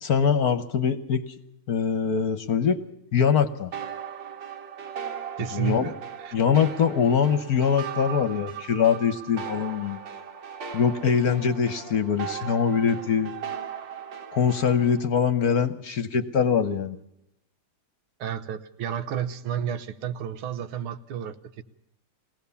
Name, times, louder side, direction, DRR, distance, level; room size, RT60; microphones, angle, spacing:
voice 1, 0.0-1.2 1.7-2.8 3.1-3.7 5.5-5.9 6.3-10.0 10.7-13.3 14.3-17.0, left 7 dB, 55° left, 11 dB, 1.2 m, -23 dB
sound 1, 3.7-15.0, right 8 dB, 60° right, 2.0 m, -38 dB
voice 2, 5.4-6.3 18.2-21.6, right 9 dB, 90° right, 9 dB, 1.9 m, -31 dB
22.0 x 17.5 x 7.0 m, 0.81 s
omnidirectional pair, 2.3 m